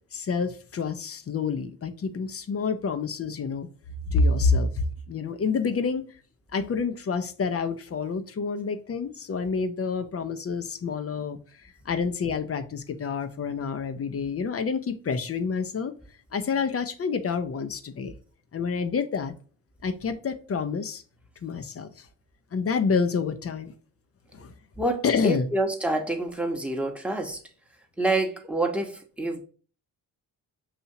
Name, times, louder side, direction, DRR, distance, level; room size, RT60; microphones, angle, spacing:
voice 1, 0.1-3.7 4.1-6.1 6.5-11.4 11.9-15.9 16.3-18.1 18.5-19.3 19.8-21.0 21.4-22.1 22.5-23.7 24.3-24.5 25.0-25.5, left 5 dB, 30° left, 0.5 m, -28 dB
voice 2, 24.8-27.4 28.0-29.4, right 2 dB, ahead, 1.0 m, -27 dB
5.8 x 2.7 x 2.7 m
hypercardioid pair, 50°, 49 cm